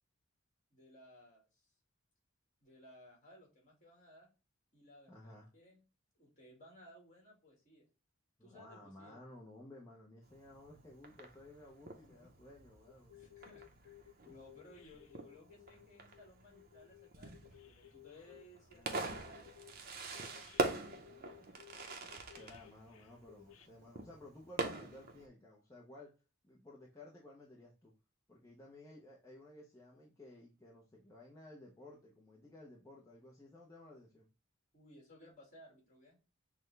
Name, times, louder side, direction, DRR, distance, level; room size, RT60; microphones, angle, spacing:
voice 1, 0.7-1.7 2.6-4.3 4.7-5.8 6.2-7.9 8.4-9.2 12.1-12.3 13.1-20.6 21.1-21.7 34.7-36.2, left 1 dB, 35° left, -1 dB, 1.9 m, -60 dB
voice 2, 5.1-5.5 8.4-13.1 14.2-14.3 18.1-18.3 18.7-19.0 22.4-26.1 26.4-27.9 28.3-34.3, left 1 dB, 15° left, -3 dB, 0.7 m, -56 dB
Fireworks, 10.2-25.3, right 2 dB, 45° right, 0.7 m, -44 dB
sound 1, 12.9-18.5 19.0-23.7, left 13 dB, 85° left, 0.6 m, -59 dB
6.0 x 2.2 x 3.2 m, 0.31 s
head